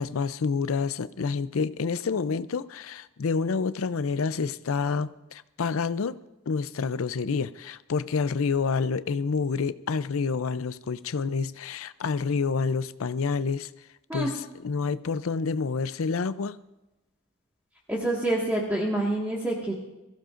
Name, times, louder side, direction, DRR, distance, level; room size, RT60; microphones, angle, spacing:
voice 1, 0.0-6.2 6.5-13.7 14.1-16.6, left 5 dB, 80° left, 0.5 m, -28 dB
voice 2, 17.9-19.7, right 1 dB, 10° right, 1.7 m, -27 dB
22.5 x 15.0 x 2.5 m
head